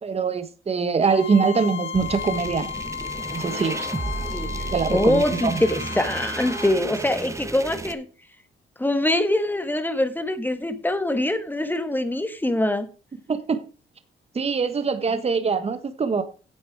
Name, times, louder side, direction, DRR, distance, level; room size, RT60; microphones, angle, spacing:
voice 1, 0.0-2.7 3.3-3.8 4.7-5.6 13.3-13.6 14.3-16.2, right 5 dB, 30° right, 1.3 m, -23 dB
Bowed string instrument, 1.0-6.8, left 7 dB, 70° left, 1.5 m, -34 dB
sound 1, 1.9-7.9, right 3 dB, 15° right, 0.9 m, -33 dB
voice 2, 4.2-8.0 8.8-12.9, left 1 dB, 10° left, 1.6 m, -24 dB
10.5 x 7.9 x 4.8 m
cardioid pair, 90°, 20 cm